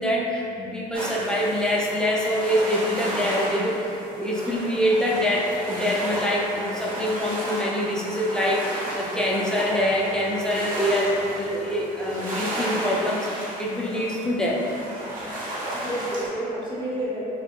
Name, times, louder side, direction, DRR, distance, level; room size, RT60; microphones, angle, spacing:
voice 1, 0.0-14.6, equal, 5° left, -5 dB, 0.4 m, -25 dB
sound 1, 0.9-16.3, right 1 dB, 55° right, 0.9 m, -33 dB
voice 2, 15.0-15.3 15.7-17.3, right 1 dB, 30° right, -9 dB, 0.9 m, -31 dB
2.7 x 2.1 x 2.9 m, 2.8 s
cardioid pair, 110°, 17 cm